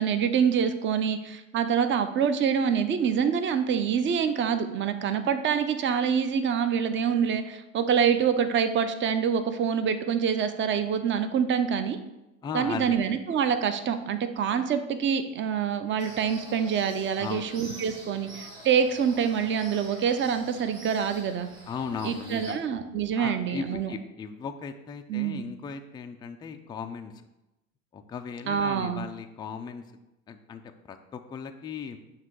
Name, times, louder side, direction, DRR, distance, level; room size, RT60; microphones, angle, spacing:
voice 1, 0.0-12.0 12.5-21.5 22.0-23.9 25.1-25.4 28.5-29.0, right 7 dB, 30° right, 10 dB, 0.6 m, -26 dB
voice 2, 12.4-13.0 17.2-17.6 21.7-22.6 23.2-27.1 27.9-29.8 30.3-32.0, left 6 dB, 10° left, 6 dB, 0.3 m, -37 dB
sound 1, 16.0-22.6, right 2 dB, 85° right, 1.8 m, -46 dB
7.5 x 2.9 x 4.6 m, 0.94 s
hypercardioid pair, 75°, 42 cm